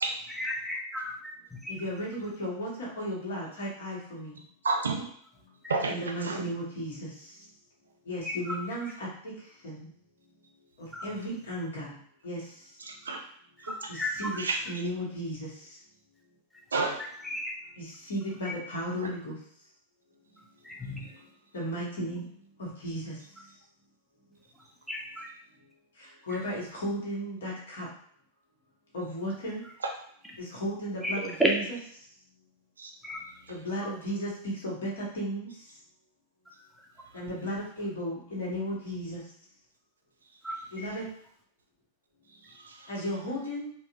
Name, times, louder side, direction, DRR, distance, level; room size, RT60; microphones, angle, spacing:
voice 1, 0.4-1.7 5.6-5.7 8.2-8.6 10.9-11.1 13.6-14.4 16.5-16.9 17.2-17.5 18.4-18.5 20.6-21.1 24.9-25.3 26.3-26.4 31.0-31.5 33.0-33.2 33.8-33.9 40.4-40.9, equal, ahead, -1 dB, 0.6 m, -33 dB
voice 2, 1.7-4.4 5.9-7.3 8.1-9.3 9.6-9.8 10.8-11.9 12.2-12.4 13.9-15.5 17.8-19.3 21.5-22.2 22.6-23.2 26.0-27.9 28.9-29.6 30.4-31.6 33.5-35.5 37.1-39.2 40.7-41.0 42.9-43.7, equal, 60° left, -4 dB, 1.3 m, -35 dB
voice 3, 4.6-5.1 5.7-6.4 12.8-13.3 13.6-13.9 14.4-14.8 16.7-17.0 19.0-19.1 29.8-29.9 32.8-32.9 42.3-42.9, right 3 dB, 70° right, 3 dB, 0.5 m, -32 dB
4.2 x 2.3 x 2.5 m, 0.62 s
figure-of-eight pair, 90°, 0 cm